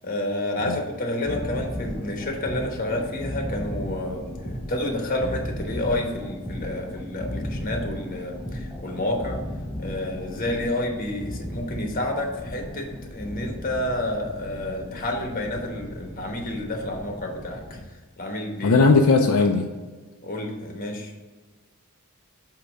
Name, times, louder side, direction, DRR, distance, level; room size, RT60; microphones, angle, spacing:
voice 1, 0.0-9.4 9.8-17.8 18.2-18.8 20.2-21.1, left 1 dB, 40° left, 2 dB, 1.2 m, -29 dB
sound 1, 1.3-17.9, equal, 5° left, 0.7 m, -35 dB
voice 2, 18.6-19.7, left 4 dB, 75° left, 3 dB, 0.5 m, -18 dB
8.2 x 2.9 x 5.1 m, 1.3 s
head